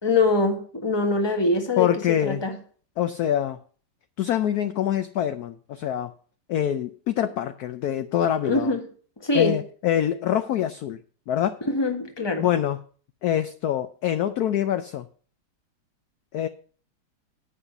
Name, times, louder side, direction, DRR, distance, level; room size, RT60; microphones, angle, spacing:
voice 1, 0.0-2.6 8.4-8.8 9.2-9.6 11.6-12.5, left 3 dB, 15° left, 1.3 m, -23 dB
voice 2, 1.8-2.4 3.0-3.6 4.2-6.1 6.5-8.7 9.3-11.0 11.3-11.6 12.4-12.8 13.2-15.1 16.3-16.5, left 10 dB, 70° left, 0.9 m, -25 dB
9.8 x 5.7 x 7.9 m
omnidirectional pair, 2.2 m